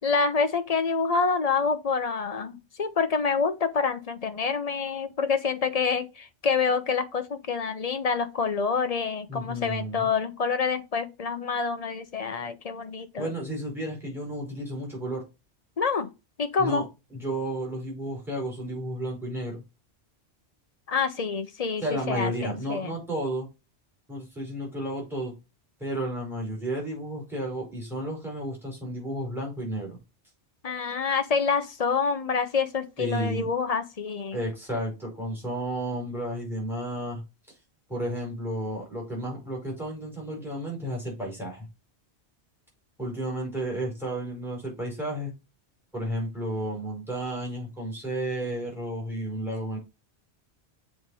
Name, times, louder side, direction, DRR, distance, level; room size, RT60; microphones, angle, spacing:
voice 1, 0.0-13.3 15.8-16.1 16.4-16.8 20.9-23.0 30.6-34.4, left 5 dB, 35° left, 0.9 m, -27 dB
voice 2, 9.3-10.1 13.2-15.2 16.6-16.8 17.1-19.6 21.8-23.5 24.1-25.3 25.8-30.0 33.0-33.5 34.3-37.2 37.9-41.7 43.0-45.3 45.9-49.8, right 1 dB, ahead, 5.1 m, -32 dB
7.9 x 4.8 x 4.1 m
omnidirectional pair, 1.1 m